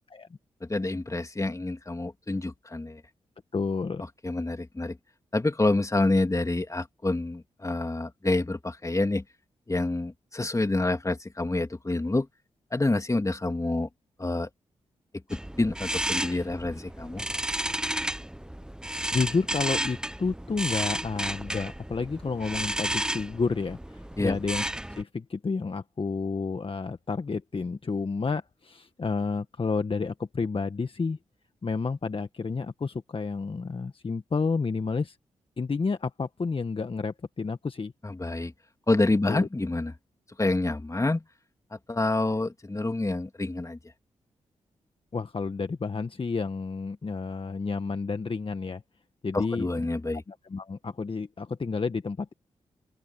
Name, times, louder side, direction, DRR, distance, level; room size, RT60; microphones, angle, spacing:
voice 1, 0.6-3.0 4.2-5.0 5.3-9.2 9.7-12.3 12.7-13.9 14.2-14.5 15.3-17.2 24.2-24.4 38.0-38.5 38.9-39.9 40.4-41.2 41.7-43.8 49.3-50.2, left 2 dB, 25° left, 3.0 m, -27 dB
voice 2, 3.5-4.0 19.1-24.6 24.9-31.2 31.6-35.2 35.6-37.9 39.3-39.5 45.1-48.8 49.2-49.9 50.3-52.3, left 4 dB, 45° left, 1.5 m, -30 dB
sound 1, 15.3-25.0, right 1 dB, 5° right, 1.0 m, -32 dB
open air
supercardioid pair, 40°, 13 cm